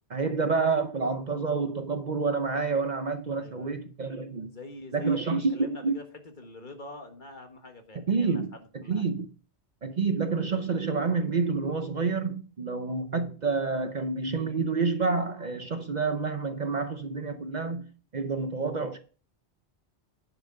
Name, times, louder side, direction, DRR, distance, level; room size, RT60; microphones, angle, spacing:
voice 1, 0.1-4.5 4.9-6.0 8.1-9.3 9.8-17.8 18.1-19.0, right 4 dB, 45° right, 0.8 m, -28 dB
voice 2, 3.4-3.7 4.5-9.1, left 2 dB, 45° left, 1.7 m, -46 dB
10.0 x 6.0 x 5.2 m
omnidirectional pair, 1.1 m